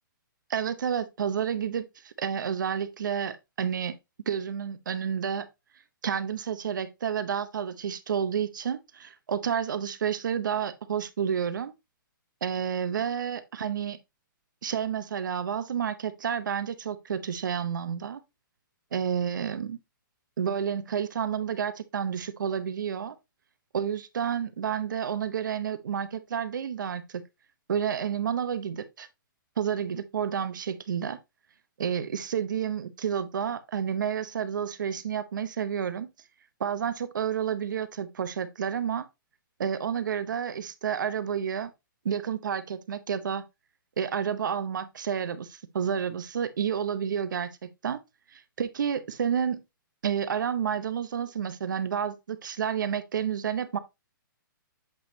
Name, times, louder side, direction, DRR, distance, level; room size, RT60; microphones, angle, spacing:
voice 1, 0.5-4.0 4.3-5.5 6.0-11.7 12.4-14.0 14.6-18.2 18.9-19.8 20.4-23.1 23.7-27.2 27.7-29.1 29.6-31.2 31.8-36.1 36.6-39.1 39.6-41.7 42.0-43.4 44.0-48.0 48.3-49.6 50.0-53.8, right 8 dB, 65° right, 0.9 m, -30 dB
7.9 x 5.2 x 2.8 m
hypercardioid pair, 175°, 11 cm